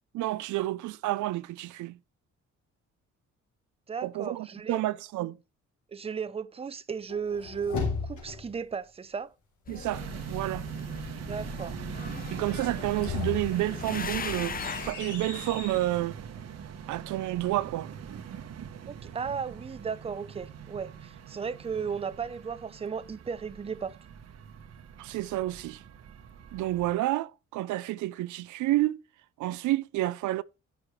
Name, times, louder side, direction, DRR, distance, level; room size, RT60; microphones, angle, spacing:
voice 1, 0.1-2.0 4.0-5.4 9.7-10.7 12.3-16.2 16.9-17.9 25.0-25.8 26.5-29.0 29.4-30.4, right 16 dB, 75° right, 0.5 m, -30 dB
voice 2, 3.9-4.8 5.9-9.3 11.3-11.8 18.9-24.0, right 6 dB, 20° right, 0.6 m, -35 dB
sound 1, 7.1-8.6 12.6-15.9, left 5 dB, 80° left, 3.4 m, -36 dB
sound 2, 9.7-14.9, left 6 dB, 30° left, 0.7 m, -39 dB
sound 3, 9.9-26.9, right 8 dB, 55° right, 1.1 m, -42 dB
10.5 x 9.8 x 3.1 m
cardioid pair, 90°, 30 cm